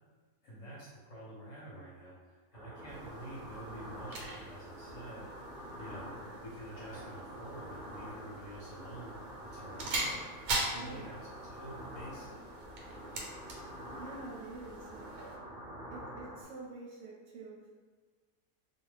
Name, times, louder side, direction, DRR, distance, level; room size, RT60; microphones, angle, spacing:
voice 1, 0.4-5.2 5.8-9.1 9.5-10.2 10.7-11.2 11.5-12.4, right 1 dB, 60° left, -6 dB, 0.9 m, -48 dB
sound 1, 2.5-16.4, right 1 dB, 40° right, 0.6 m, -47 dB
sound 2, 2.9-15.4, right 2 dB, 90° right, 1.1 m, -42 dB
voice 2, 10.7-11.1 14.0-15.1 15.9-17.7, right 3 dB, 65° right, -4 dB, 0.9 m, -47 dB
2.4 x 2.2 x 3.2 m, 1.5 s
omnidirectional pair, 1.5 m